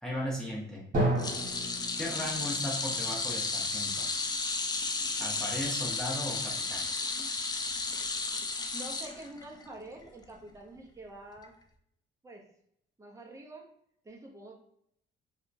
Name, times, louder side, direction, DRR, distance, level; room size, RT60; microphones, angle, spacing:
voice 1, 0.0-0.8 1.2-1.3 2.0-4.0 5.2-6.8, equal, 5° left, -5 dB, 1.0 m, -37 dB
Drum, 0.9-4.6, right 1 dB, 40° right, 1.5 m, -34 dB
sound 1, 1.2-9.7 10.0-10.2 11.4-11.5, left 3 dB, 20° left, 0.3 m, -33 dB
voice 2, 8.7-11.6 12.2-12.4 13.0-13.7 14.0-14.5, right 1 dB, 15° right, 0 dB, 0.6 m, -46 dB
2.7 x 2.3 x 2.5 m, 0.71 s
cardioid pair, 90°, 20 cm